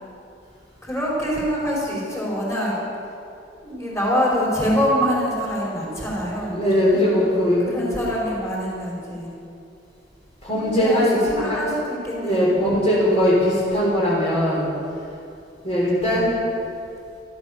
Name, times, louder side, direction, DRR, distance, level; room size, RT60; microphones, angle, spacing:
voice 1, 0.8-2.7 3.5-7.1 7.7-9.3 10.5-11.0 11.3-12.5 16.0-16.3, equal, 15° left, -5 dB, 5.0 m, -25 dB
voice 2, 6.4-7.6 10.4-11.6 12.2-14.7 15.6-16.4, equal, 35° left, -8 dB, 3.7 m, -20 dB
14.0 x 13.5 x 6.8 m, 2.5 s
head